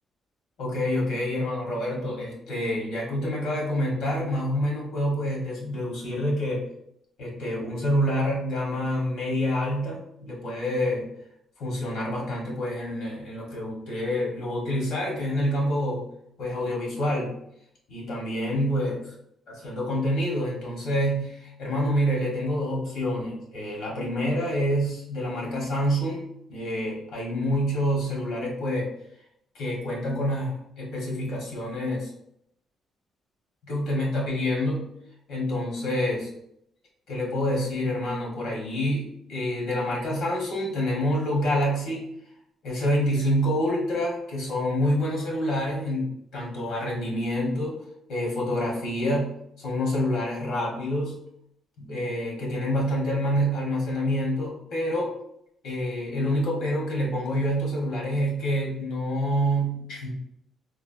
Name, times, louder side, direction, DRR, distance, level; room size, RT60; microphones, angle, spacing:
voice 1, 0.6-6.6 7.2-11.1 11.6-16.1 16.4-17.4 17.9-19.0 19.5-26.2 26.5-28.9 29.5-32.1 33.6-34.9 35.3-36.3 37.1-42.1 42.6-47.8 48.1-51.2 51.8-55.1 55.6-60.1, equal, 80° left, -2 dB, 1.2 m, -27 dB
3.2 x 2.0 x 2.6 m, 0.73 s
cardioid pair, 90°, 0 cm